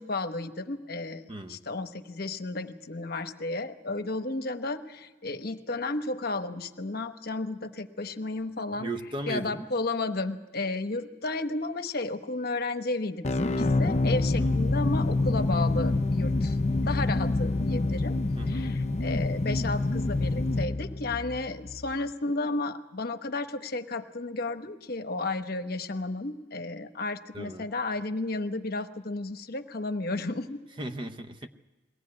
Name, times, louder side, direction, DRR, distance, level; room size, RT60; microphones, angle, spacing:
voice 1, 0.0-1.2 1.5-8.9 9.3-16.6 16.8-18.1 18.5-30.6, left 2 dB, 50° left, 1.0 m, -33 dB
voice 2, 8.7-9.7 14.4-14.6 18.4-18.8 27.3-27.7 30.8-31.5, right 2 dB, 25° right, 0.8 m, -36 dB
sound 1, 13.2-21.9, left 2 dB, 35° left, 0.6 m, -27 dB
22.0 x 17.0 x 9.6 m
head